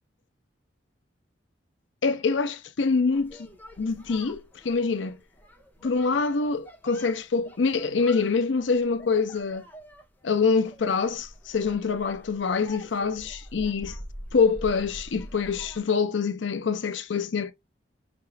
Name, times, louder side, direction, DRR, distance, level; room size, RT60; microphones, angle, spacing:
voice 1, 2.0-3.5 3.8-5.2 5.8-9.7 10.2-14.0 14.3-17.5, left 4 dB, 70° left, 0.5 m, -25 dB
sound 1, 3.1-15.8, equal, 10° left, 1.1 m, -46 dB
5.5 x 3.6 x 2.3 m
head